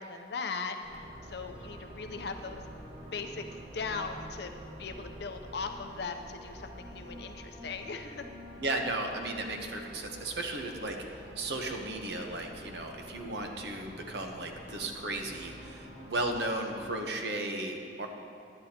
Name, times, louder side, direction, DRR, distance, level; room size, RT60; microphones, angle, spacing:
voice 1, 0.0-2.7 3.1-4.5 4.8-8.3, left 4 dB, 65° left, 6 dB, 0.6 m, -39 dB
sound 1, 0.8-16.9, equal, 35° right, 1.4 m, -48 dB
voice 2, 8.6-11.0 11.4-18.1, right 2 dB, 70° right, 3 dB, 0.9 m, -35 dB
10.5 x 10.0 x 2.9 m, 2.4 s
head